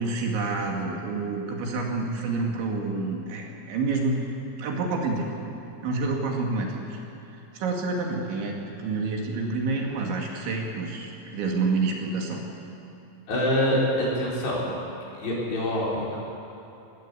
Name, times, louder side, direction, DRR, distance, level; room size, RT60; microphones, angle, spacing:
voice 1, 0.0-4.3 4.6-5.3 5.8-7.0 7.5-12.4, right 3 dB, 70° right, 0 dB, 4.5 m, -28 dB
voice 2, 13.3-14.8 15.1-16.2, left 1 dB, 55° left, -5 dB, 6.8 m, -25 dB
23.5 x 18.0 x 8.4 m, 2.9 s
omnidirectional pair, 5.7 m